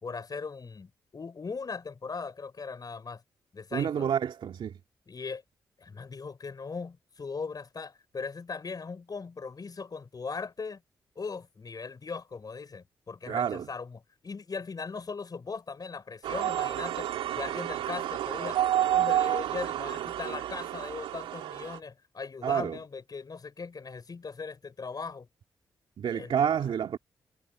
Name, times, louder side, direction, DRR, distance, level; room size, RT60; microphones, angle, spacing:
voice 1, 0.0-3.2 3.5-4.1 5.1-5.4 5.8-10.8 11.2-17.1 17.4-25.3 26.1-26.5, left 4 dB, 45° left, 5.5 m, -39 dB
voice 2, 3.7-4.8 13.3-13.7 22.4-22.8 26.0-27.0, right 8 dB, 70° right, 2.3 m, -29 dB
sound 1, 16.2-21.8, right 12 dB, 90° right, 2.7 m, -30 dB
supercardioid pair, 50°, 9 cm